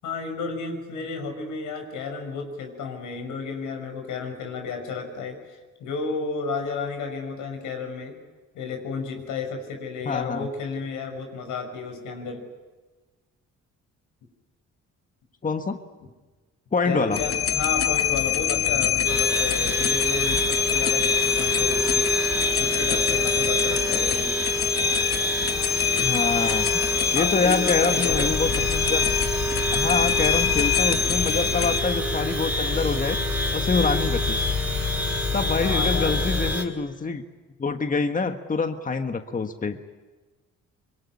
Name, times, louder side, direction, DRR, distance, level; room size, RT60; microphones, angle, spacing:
voice 1, 0.0-8.2 8.5-12.4 16.8-22.1 22.6-24.4 27.1-28.3 35.6-36.1, left 4 dB, 85° left, 5 dB, 6.2 m, -32 dB
voice 2, 10.0-10.5 15.4-15.8 16.7-17.2 26.0-26.7 27.1-29.1 29.7-33.2 33.5-34.4 35.3-37.2 37.6-39.8, left 4 dB, 25° left, 7 dB, 1.4 m, -26 dB
sound 1, 17.1-31.8, left 9 dB, 50° left, 1.0 m, -25 dB
sound 2, 19.1-36.6, right 1 dB, 5° right, 4.9 m, -28 dB
sound 3, 28.1-36.6, left 6 dB, 65° left, 3.1 m, -30 dB
25.0 x 23.0 x 9.7 m, 1.3 s
cardioid pair, 90°, 30 cm